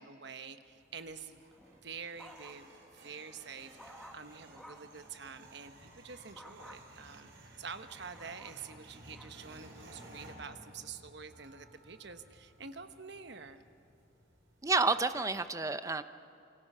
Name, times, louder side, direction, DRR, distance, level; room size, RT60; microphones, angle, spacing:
voice 1, 0.0-1.5 1.8-13.6, right 5 dB, 60° right, 9 dB, 1.1 m, -47 dB
sound 1, 0.6-15.5, right 1 dB, 80° right, 5.2 m, -56 dB
sound 2, 1.5-2.9 3.3-5.0 6.4-6.8 7.4-9.4 10.0-10.4, equal, ahead, 1.5 m, -55 dB
voice 2, 14.6-16.0, right 3 dB, 15° right, 11 dB, 0.6 m, -30 dB
29.0 x 23.0 x 5.6 m, 2.7 s
head